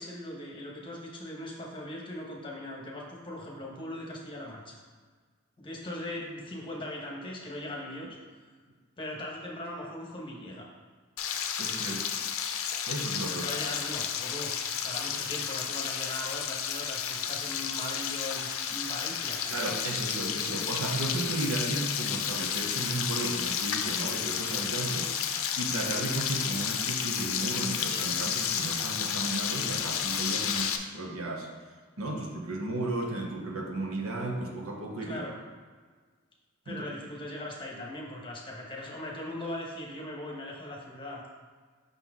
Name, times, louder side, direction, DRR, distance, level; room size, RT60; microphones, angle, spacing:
voice 1, 0.0-4.8 5.6-8.2 9.0-10.7 13.2-19.4 35.0-35.4 36.6-41.2, left 1 dB, 25° left, -2 dB, 1.1 m, -39 dB
Frying (food), 11.2-30.8, left 8 dB, 70° left, 0.5 m, -32 dB
voice 2, 11.6-12.1 12.9-13.5 19.5-31.5 32.0-35.2 36.7-36.8, right 2 dB, 80° right, 1 dB, 0.9 m, -34 dB
5.7 x 5.7 x 3.6 m, 1.5 s
head